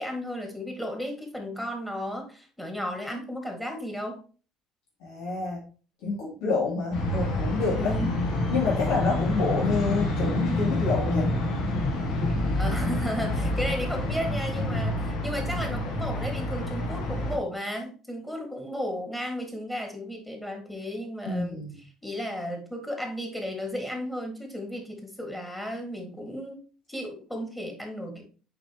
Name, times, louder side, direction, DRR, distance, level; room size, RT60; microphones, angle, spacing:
voice 1, 0.0-4.2 7.8-8.1 12.5-26.6 26.9-28.2, equal, 5° left, 3 dB, 2.0 m, -34 dB
voice 2, 5.0-5.6 6.0-8.0 8.5-11.3 21.3-21.8, left 4 dB, 85° left, -5 dB, 2.7 m, -28 dB
sound 1, 6.9-17.4, left 1 dB, 65° left, 1.7 m, -27 dB
7.0 x 5.3 x 3.0 m, 0.37 s
cardioid pair, 130°, 0 cm